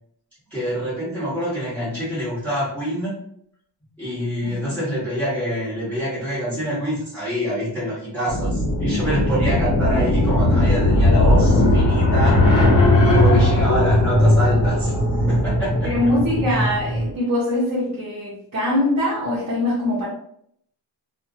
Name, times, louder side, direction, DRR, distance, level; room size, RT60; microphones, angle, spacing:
voice 1, 0.5-3.2 4.0-12.4 13.1-14.9 15.3-15.9 16.5-16.6, equal, 5° left, -14 dB, 1.2 m, -26 dB
voice 2, 4.4-4.8 13.2-13.7 15.8-20.1, left 1 dB, 40° right, -8 dB, 0.9 m, -23 dB
sound 1, 8.3-17.1, left 1 dB, 50° left, 1.3 m, -18 dB
2.6 x 2.6 x 2.5 m, 0.68 s
wide cardioid pair, 175°, 40 cm